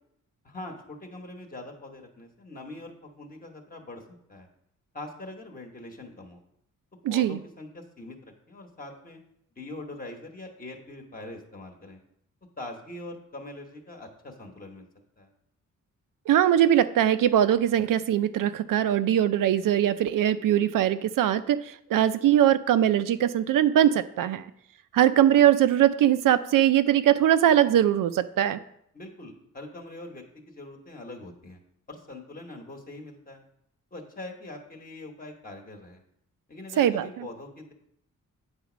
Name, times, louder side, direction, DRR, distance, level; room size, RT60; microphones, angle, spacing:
voice 1, 0.4-4.0 4.3-4.5 4.9-6.4 7.1-9.2 9.6-12.0 12.6-14.9 15.2-15.3 28.9-31.6 31.9-33.4 33.9-36.0 36.5-37.7, left 2 dB, 25° left, 2 dB, 1.0 m, -43 dB
voice 2, 7.0-7.4 16.3-24.5 24.9-28.6 36.8-37.3, right 11 dB, 85° right, 13 dB, 0.6 m, -21 dB
8.8 x 4.1 x 6.0 m, 0.72 s
wide cardioid pair, 165°, 32 cm